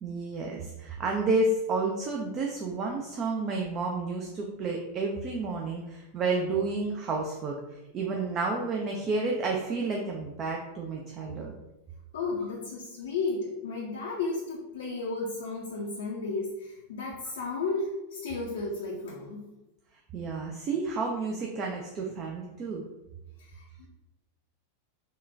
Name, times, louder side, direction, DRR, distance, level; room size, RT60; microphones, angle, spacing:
voice 1, 0.0-7.6 7.9-11.5 20.1-22.8, right 3 dB, 30° right, 0 dB, 0.4 m, -30 dB
voice 2, 12.1-19.5 23.5-23.9, left 3 dB, 60° left, -2 dB, 0.5 m, -33 dB
3.6 x 2.2 x 2.5 m, 0.96 s
figure-of-eight pair, 90°, 0 cm